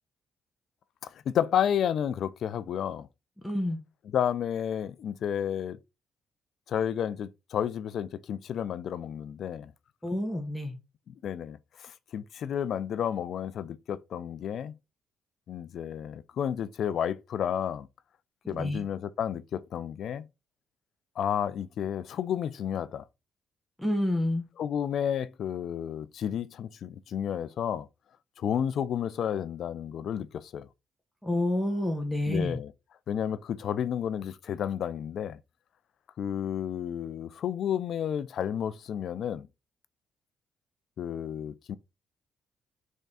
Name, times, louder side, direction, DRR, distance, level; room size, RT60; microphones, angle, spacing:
voice 1, 1.0-3.1 4.1-5.8 6.7-9.7 11.1-14.7 15.5-17.9 18.5-20.2 21.2-23.0 24.6-27.9 28.4-30.7 32.3-32.7 33.1-35.4 36.2-39.5 41.0-41.7, left 9 dB, 65° left, 0.4 m, -31 dB
voice 2, 3.4-3.8 10.0-10.8 18.4-18.8 23.8-24.5 31.2-32.6, left 1 dB, 5° left, 0.9 m, -29 dB
3.6 x 3.2 x 4.0 m
cardioid pair, 90°, 0 cm